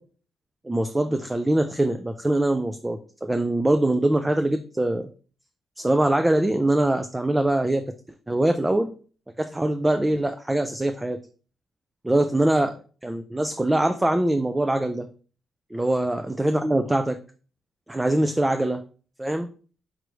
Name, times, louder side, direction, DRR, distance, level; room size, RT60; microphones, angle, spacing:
voice 1, 0.6-5.1 5.8-7.9 8.3-8.9 9.4-11.2 12.0-15.1 15.7-17.2 17.9-18.8 19.2-19.5, right 1 dB, 10° right, 8 dB, 0.3 m, -23 dB
5.1 x 3.4 x 3.1 m, 0.40 s
cardioid pair, 130°, 0 cm